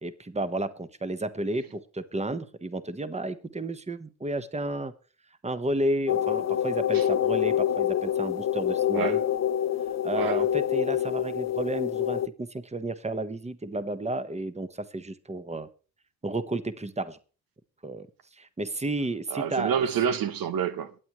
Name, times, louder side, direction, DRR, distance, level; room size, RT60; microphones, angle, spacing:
voice 1, 0.0-4.9 5.4-9.2 9.9-15.7 16.2-17.2 17.8-18.1 18.4-19.8, right 1 dB, 15° right, 1.3 m, -32 dB
sound 1, 6.1-12.3, left 10 dB, 45° left, 0.7 m, -26 dB
voice 2, 19.3-21.0, right 8 dB, 65° right, 1.0 m, -28 dB
22.5 x 8.4 x 3.2 m
supercardioid pair, 55°, 38 cm